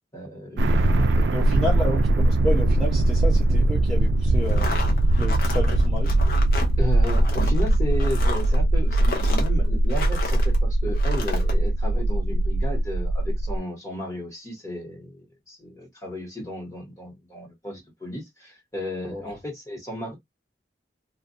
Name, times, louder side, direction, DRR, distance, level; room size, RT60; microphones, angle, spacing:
voice 1, 0.1-1.3 6.8-20.2, left 1 dB, 20° left, 1.2 m, -34 dB
sound 1, 0.6-13.6, right 1 dB, 90° right, 0.3 m, -21 dB
voice 2, 1.3-4.7 5.2-6.2 19.1-19.2, left 1 dB, ahead, 0.7 m, -30 dB
sound 2, 4.4-10.6 10.9-11.5, left 3 dB, 55° left, 0.6 m, -33 dB
2.4 x 2.3 x 2.5 m
head